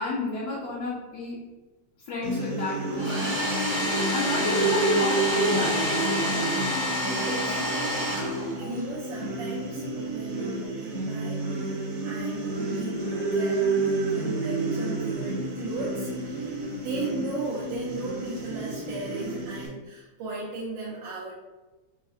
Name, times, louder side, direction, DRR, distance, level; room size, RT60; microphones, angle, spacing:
voice 1, 0.0-1.4 2.1-3.4 4.1-6.4, left 2 dB, 65° left, -6 dB, 1.0 m, -31 dB
sound 1, 2.2-19.7, right 2 dB, 55° right, 1.0 m, -30 dB
Domestic sounds home sounds, 2.9-8.8, left 1 dB, 15° right, 0.4 m, -29 dB
voice 2, 7.1-8.2 8.6-21.3, right 3 dB, 85° right, -5 dB, 1.4 m, -36 dB
4.8 x 2.0 x 2.6 m, 1.2 s
omnidirectional pair, 2.0 m